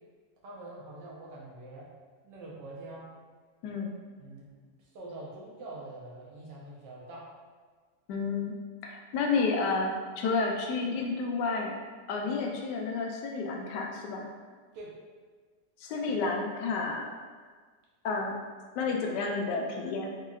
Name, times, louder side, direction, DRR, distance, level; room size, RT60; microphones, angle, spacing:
voice 1, 0.4-1.9 2.2-3.1 4.2-4.5 4.8-7.3 14.7-15.0, right 2 dB, 90° right, -4 dB, 1.4 m, -44 dB
voice 2, 3.6-3.9 8.1-8.5 8.8-11.8 12.1-14.3 15.8-17.1 18.0-18.4 18.8-20.2, left 4 dB, 80° left, 1 dB, 1.2 m, -30 dB
3.9 x 2.8 x 2.3 m, 1.5 s
omnidirectional pair, 1.8 m